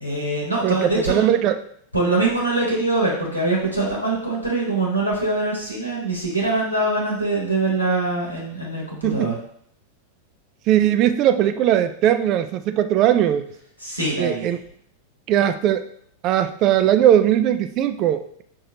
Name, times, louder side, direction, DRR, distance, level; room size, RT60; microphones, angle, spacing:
voice 1, 0.0-1.3 1.9-9.4 13.8-14.6, right 2 dB, 90° left, -3 dB, 1.1 m, -23 dB
voice 2, 0.6-1.6 9.0-9.3 10.7-13.4 14.2-14.6 15.3-15.8 16.2-18.4, right 11 dB, 40° right, 10 dB, 0.3 m, -19 dB
5.2 x 2.8 x 2.8 m, 0.65 s
figure-of-eight pair, 90°, 0 cm